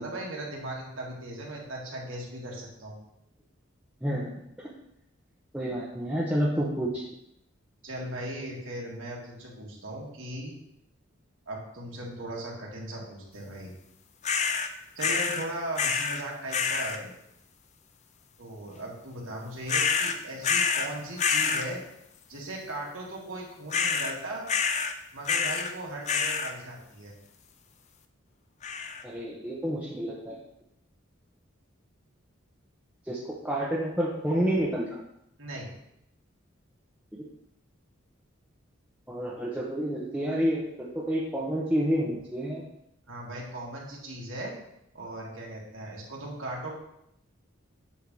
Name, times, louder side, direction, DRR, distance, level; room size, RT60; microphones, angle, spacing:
voice 1, 0.0-3.0 7.8-10.5 11.5-13.7 15.0-17.1 18.4-21.8 22.3-24.5 25.1-27.1 35.4-35.7 43.1-44.5 44.9-46.7, right 1 dB, 70° right, -3 dB, 2.0 m, -38 dB
voice 2, 4.0-4.3 5.5-7.0 29.0-30.4 33.1-33.2 33.4-34.9 37.1-37.2 39.1-42.6, equal, 5° right, -5 dB, 0.8 m, -29 dB
sound 1, 14.2-14.7 15.0-15.5 15.7-16.2 16.5-17.0 19.7-20.9 21.2-21.7 23.7-24.2 24.5-24.9 25.2-25.7 26.1-26.5 28.6-29.0, left 6 dB, 35° left, 0.5 m, -27 dB
8.3 x 2.8 x 6.1 m, 0.78 s
head